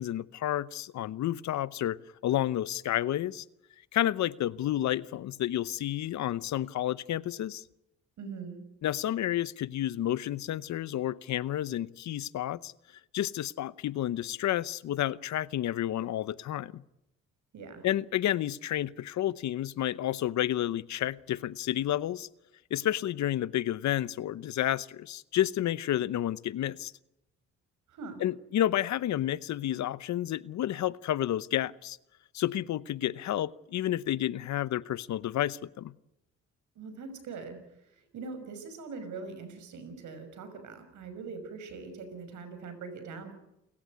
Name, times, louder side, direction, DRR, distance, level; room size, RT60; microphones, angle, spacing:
voice 1, 0.0-2.0 2.2-3.4 3.9-7.6 8.8-12.7 13.1-16.8 17.8-22.3 22.7-26.9 28.2-32.0 32.3-35.9, left 12 dB, 70° left, 0.8 m, -30 dB
voice 2, 8.2-8.6 17.5-17.9 27.9-28.2 36.8-43.3, right 4 dB, 75° right, 6.0 m, -42 dB
29.5 x 15.0 x 9.4 m
cardioid pair, 90°, 30 cm